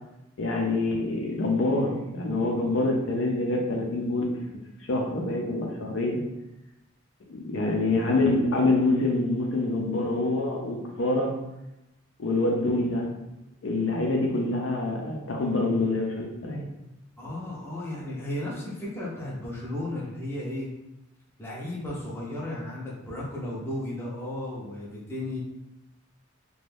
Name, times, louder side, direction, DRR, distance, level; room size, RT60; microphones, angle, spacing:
voice 1, 0.4-4.4 4.9-6.2 7.3-11.3 12.2-13.1 13.6-16.7, left 2 dB, 70° left, 0 dB, 0.5 m, -26 dB
voice 2, 7.9-8.2 17.2-20.7 21.4-25.4, left 1 dB, 10° left, -5 dB, 0.6 m, -34 dB
2.5 x 2.2 x 3.3 m, 0.92 s
head